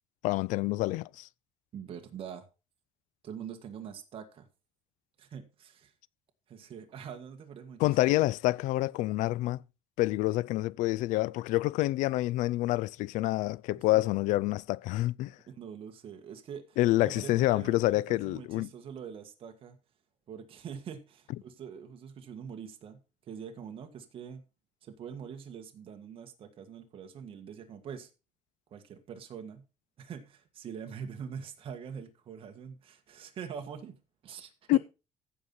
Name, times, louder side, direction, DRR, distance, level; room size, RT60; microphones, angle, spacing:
voice 1, 0.2-1.3 7.8-9.6 10.0-15.4 16.8-18.7 34.7-34.8, left 17 dB, 80° left, 0.4 m, -27 dB
voice 2, 1.7-2.5 3.2-4.5 5.2-5.9 6.5-8.1 15.5-19.8 20.3-24.4 24.8-28.1 28.7-29.6 30.0-34.8, right 7 dB, 45° right, 1.7 m, -44 dB
15.0 x 5.5 x 4.4 m
cardioid pair, 150°, 13 cm